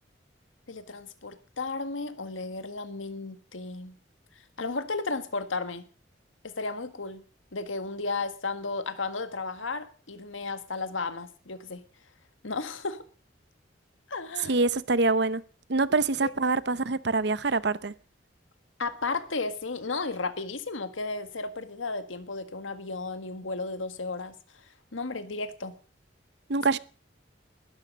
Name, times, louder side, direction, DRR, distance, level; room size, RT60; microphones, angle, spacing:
voice 1, 0.7-4.0 4.6-5.9 6.4-7.2 7.5-11.8 12.4-13.1 14.1-14.6 16.2-16.3 18.8-24.4 24.9-25.7, left 3 dB, 90° left, 1.6 m, -34 dB
voice 2, 14.4-15.4 15.7-17.9 26.5-26.8, right 3 dB, 60° right, 0.9 m, -25 dB
20.5 x 13.0 x 5.3 m
head